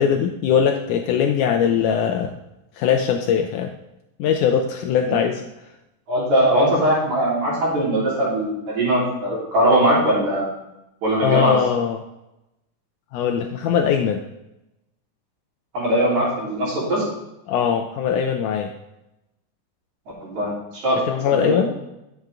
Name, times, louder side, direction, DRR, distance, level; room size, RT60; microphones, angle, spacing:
voice 1, 0.0-2.3 2.8-3.7 4.2-5.4 11.2-12.0 13.1-14.3 17.5-18.7 21.1-21.7, left 7 dB, 85° left, 4 dB, 1.8 m, -21 dB
voice 2, 6.1-10.5 11.0-11.6 15.7-17.0 20.2-21.6, right 1 dB, 55° right, -6 dB, 4.7 m, -20 dB
10.5 x 7.9 x 3.6 m, 0.92 s
omnidirectional pair, 4.1 m